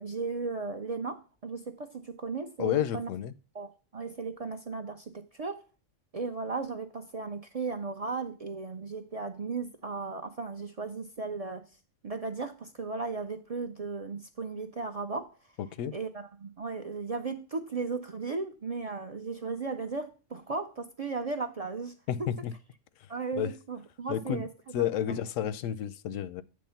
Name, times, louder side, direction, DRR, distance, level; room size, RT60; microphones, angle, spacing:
voice 1, 0.0-3.1 3.5-5.6 6.1-11.7 12.0-15.3 15.9-21.9 22.2-22.3 23.1-24.5 24.8-25.2, right 4 dB, 45° right, 0.5 m, -36 dB
voice 2, 2.6-3.3 15.8-15.9 22.1-22.5 23.4-23.5 24.1-24.5 24.7-26.4, left 10 dB, 90° left, 0.9 m, -31 dB
8.5 x 3.2 x 5.5 m
omnidirectional pair, 1.3 m